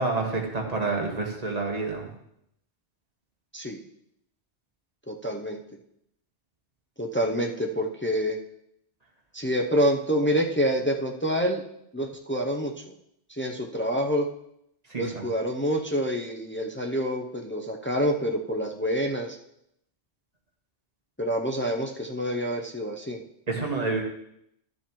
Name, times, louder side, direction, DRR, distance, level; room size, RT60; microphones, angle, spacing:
voice 1, 0.0-2.1 14.9-15.3 23.5-24.0, right 3 dB, 35° right, 0 dB, 1.5 m, -28 dB
voice 2, 5.1-5.6 7.0-8.4 9.3-11.6 11.9-12.9 13.3-14.3 14.9-19.4 21.2-23.2, equal, 20° left, 2 dB, 0.3 m, -27 dB
12.0 x 7.2 x 3.0 m, 0.76 s
omnidirectional pair, 1.2 m